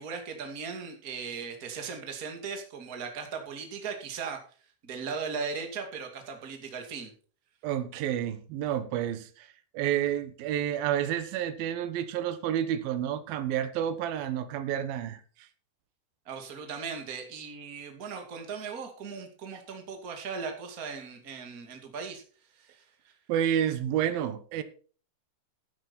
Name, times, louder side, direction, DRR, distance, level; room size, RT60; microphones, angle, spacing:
voice 1, 0.0-4.4 4.8-7.1 16.2-22.2 22.5-23.1, right 5 dB, 35° right, 1.5 m, -38 dB
voice 2, 7.6-15.5 23.3-24.6, right 10 dB, 70° right, 2.4 m, -30 dB
12.5 x 9.1 x 4.4 m
omnidirectional pair, 5.5 m